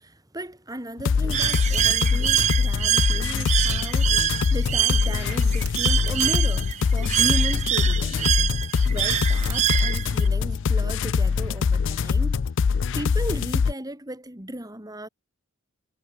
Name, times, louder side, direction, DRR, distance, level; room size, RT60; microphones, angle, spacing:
voice 1, 0.0-12.5 12.9-15.1, right 1 dB, 15° right, 3.1 m, -36 dB
sound 1, 1.0-13.7, left 5 dB, 55° left, 0.4 m, -23 dB
Bird, 1.3-10.3, right 11 dB, 30° right, 0.3 m, -25 dB
sound 2, 4.4-6.8 8.8-8.9 9.2-10.5 10.8-12.0 13.4-13.6, right 8 dB, 80° right, 2.8 m, -45 dB
head